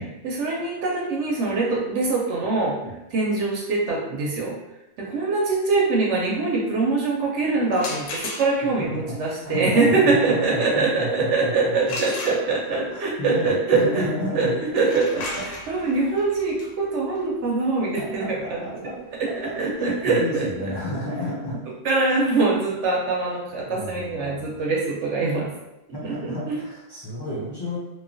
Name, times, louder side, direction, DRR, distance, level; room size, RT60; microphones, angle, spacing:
voice 1, 0.2-2.8 3.1-4.6 5.0-14.0 14.3-18.7 19.2-20.7 21.8-25.5 26.0-26.6, right 3 dB, 75° right, -3 dB, 0.9 m, -23 dB
sound 1, 7.7-8.8 11.9-12.9 14.7-20.4, left 2 dB, 85° left, 0.9 m, -36 dB
voice 2, 8.6-12.0 12.2-12.3 12.7-14.6 15.8-15.9 18.0-18.9 19.4-21.6 23.7-24.6 25.9-27.8, left 1 dB, 35° left, -8 dB, 0.4 m, -32 dB
3.0 x 2.0 x 2.5 m, 0.91 s
omnidirectional pair, 1.3 m